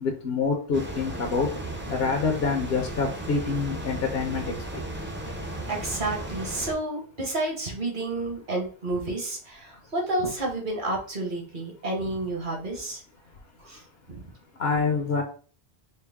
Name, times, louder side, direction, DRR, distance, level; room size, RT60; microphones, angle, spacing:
voice 1, 0.0-1.5 1.9-4.5 14.6-15.2, left 4 dB, 70° left, 3 dB, 0.9 m, -26 dB
sound 1, 0.7-6.7, right 1 dB, 15° right, 0.4 m, -35 dB
voice 2, 5.7-13.0 13.6-13.8, right 2 dB, 50° right, 1 dB, 1.1 m, -30 dB
4.3 x 2.0 x 3.4 m, 0.41 s
omnidirectional pair, 1.1 m